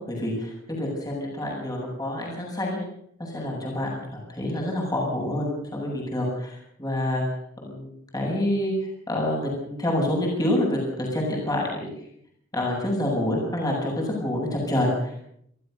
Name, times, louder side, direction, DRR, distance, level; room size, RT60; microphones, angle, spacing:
voice 1, 0.1-2.8 3.2-4.0 4.3-7.2 7.6-8.7 9.1-11.9 12.5-15.3, left 1 dB, 20° left, -2 dB, 8.0 m, -27 dB
29.0 x 15.0 x 6.7 m, 0.70 s
head